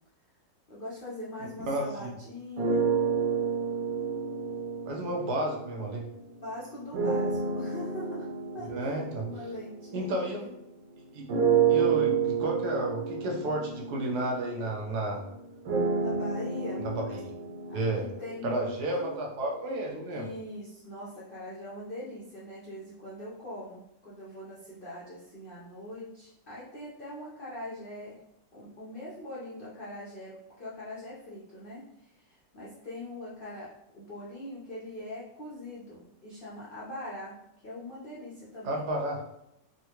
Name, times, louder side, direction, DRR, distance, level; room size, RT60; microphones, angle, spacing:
voice 1, 0.7-2.9 6.4-8.3 8.5-8.9 9.2-10.5 15.9-16.8 17.7-19.2 20.1-28.1 28.5-33.7 33.9-37.3 37.6-38.9, left 1 dB, 60° left, -7 dB, 0.5 m, -42 dB
voice 2, 1.7-2.1 4.9-6.0 8.7-9.3 9.9-10.5 11.1-11.3 11.7-15.2 16.8-17.3 17.7-18.1 18.4-20.3 38.6-39.2, right 1 dB, 70° right, -1 dB, 1.1 m, -32 dB
sound 1, 2.6-6.1 6.9-10.7 11.3-19.3, right 6 dB, 90° right, 1.3 m, -30 dB
3.6 x 2.1 x 2.9 m, 0.80 s
omnidirectional pair, 1.9 m